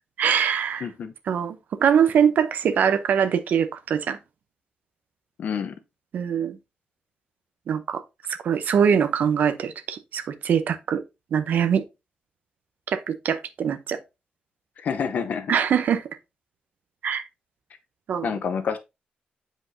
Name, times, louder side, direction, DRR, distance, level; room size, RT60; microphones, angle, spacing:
voice 1, 0.2-0.9 1.3-4.2 6.1-6.6 7.7-8.0 8.3-11.0 11.3-11.8 12.9-14.0 15.5-16.0 17.0-17.2 18.1-18.3, right 7 dB, 70° right, 0.7 m, -23 dB
voice 2, 0.8-1.1 5.4-5.7 14.8-15.6 18.2-18.8, left 6 dB, 60° left, 0.8 m, -28 dB
7.7 x 5.1 x 2.7 m
wide cardioid pair, 155°, 3 cm